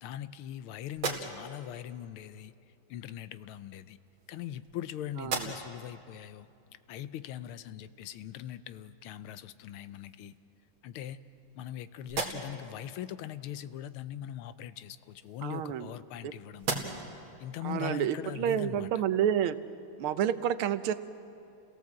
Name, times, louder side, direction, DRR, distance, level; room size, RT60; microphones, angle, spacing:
voice 1, 0.0-2.5 2.9-4.0 4.3-6.5 6.9-10.3 10.8-11.2 11.5-16.7 17.4-18.9, left 11 dB, 85° left, 13 dB, 1.6 m, -41 dB
sound 1, 0.9-1.7 2.9-3.0 4.0-4.8 5.2-5.9 6.4-6.5 9.2-9.3 9.7-10.4 11.0-11.7 12.0-12.8 14.8-16.2 16.6-17.2, right 4 dB, 70° right, 2.8 m, -38 dB
voice 2, 5.2-5.5 15.4-15.9 16.2-16.3 17.6-19.6 20.0-20.9, right 10 dB, 85° right, 12 dB, 1.7 m, -29 dB
30.0 x 17.0 x 7.5 m, 2.6 s
omnidirectional pair, 2.3 m